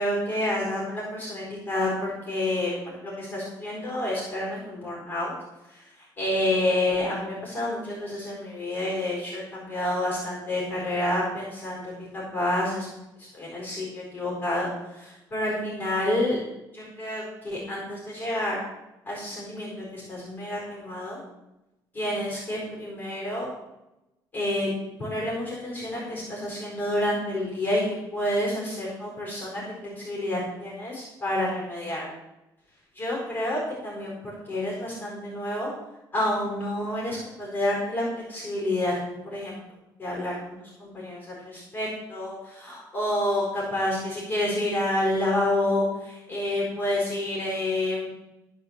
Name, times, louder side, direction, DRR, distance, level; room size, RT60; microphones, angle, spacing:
voice 1, 0.0-5.3 5.6-12.9 13.2-16.4 16.7-18.6 19.1-21.2 21.9-23.5 24.3-24.7 25.0-32.1 32.9-34.2 34.4-35.7 36.1-39.0 39.2-39.6 40.0-48.1, left 1 dB, 20° left, -4 dB, 4.4 m, -29 dB
14.5 x 5.2 x 7.2 m, 0.96 s
cardioid pair, 165°, 8 cm